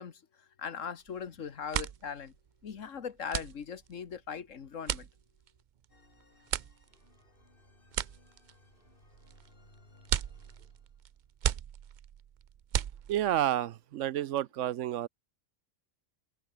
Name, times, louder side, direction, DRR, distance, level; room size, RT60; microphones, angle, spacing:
voice 1, 0.0-2.3 2.6-5.1, left 7 dB, 75° left, 1.7 m, -40 dB
sound 1, 1.0-1.3 1.5-13.5, right 9 dB, 55° right, 0.5 m, -37 dB
sound 2, 5.9-11.1, left 3 dB, 45° left, 3.0 m, -62 dB
voice 2, 13.1-15.1, right 12 dB, 75° right, 0.9 m, -30 dB
open air
omnidirectional pair, 1.3 m